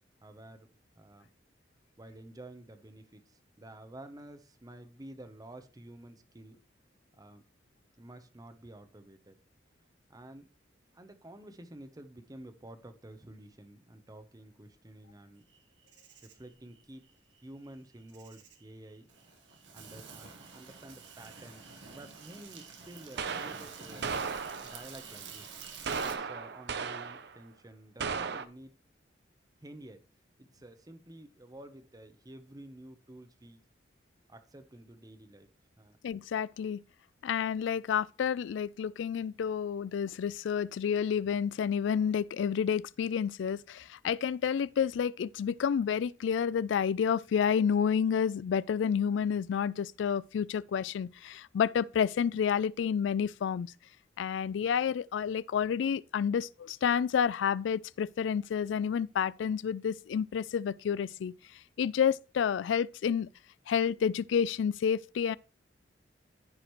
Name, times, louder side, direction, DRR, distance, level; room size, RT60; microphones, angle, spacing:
voice 1, 0.2-0.7 0.9-1.3 2.0-6.6 7.2-7.4 8.0-9.4 10.1-10.5 10.9-15.4 16.2-17.0 17.4-19.1 19.7-24.2 24.6-25.5 26.0-28.7 29.6-30.1 30.4-33.6 34.3-35.5 35.8-36.0, right 1 dB, 20° right, 0.8 m, -50 dB
Insect, 15.5-26.2, right 5 dB, 80° right, 1.4 m, -49 dB
sound 1, 22.1-22.2 23.2-24.9 25.8-27.3 28.0-28.4, right 5 dB, 65° right, 0.6 m, -35 dB
voice 2, 36.0-36.8 37.2-53.7 54.2-61.3 61.8-63.3 63.7-65.4, left 7 dB, 80° left, 0.3 m, -30 dB
14.5 x 5.0 x 3.1 m
head